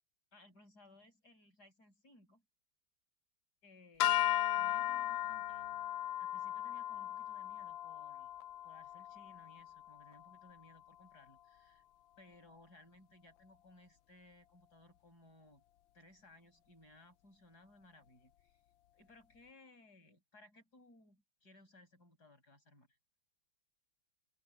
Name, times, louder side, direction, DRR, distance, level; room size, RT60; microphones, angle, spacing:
voice 1, 0.3-2.4 3.6-4.2 4.5-5.8 6.2-8.3 8.6-11.8 12.2-15.6 15.9-18.6 18.9-22.9, left 2 dB, 50° left, 8.6 m, -62 dB
sound 1, 4.0-10.4, left 12 dB, 80° left, 1.3 m, -37 dB
open air
omnidirectional pair, 2.2 m